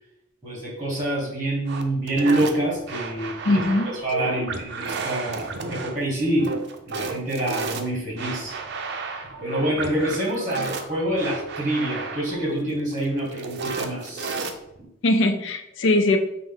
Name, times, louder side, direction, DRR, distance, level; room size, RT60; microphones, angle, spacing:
voice 1, 0.4-3.6 3.9-6.6 6.8-14.5 14.8-14.9, right 1 dB, 20° right, -4 dB, 1.2 m, -27 dB
sound 1, 1.7-14.9, right 4 dB, 60° right, 0.4 m, -32 dB
voice 2, 3.5-3.9 15.0-16.2, left 2 dB, 65° left, 7 dB, 0.4 m, -20 dB
Telephone, 9.8-12.9 13.1-13.8 14.2-14.5, right 2 dB, 10° left, 1.1 m, -42 dB
5.3 x 2.0 x 3.6 m, 0.82 s
head